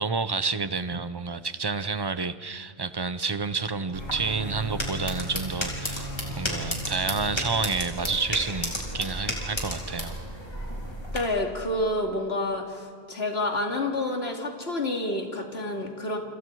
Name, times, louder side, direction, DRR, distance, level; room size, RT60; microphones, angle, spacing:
voice 1, 0.0-10.2, right 4 dB, 30° right, 13 dB, 0.7 m, -29 dB
Bowed string instrument, 3.7-7.9, right 1 dB, 60° left, 5.4 m, -39 dB
sound 1, 3.9-11.2, equal, 25° left, 4.0 m, -33 dB
voice 2, 11.1-16.2, left 1 dB, 80° left, 2 dB, 2.8 m, -29 dB
29.0 x 26.5 x 4.7 m, 2.3 s
omnidirectional pair, 1.0 m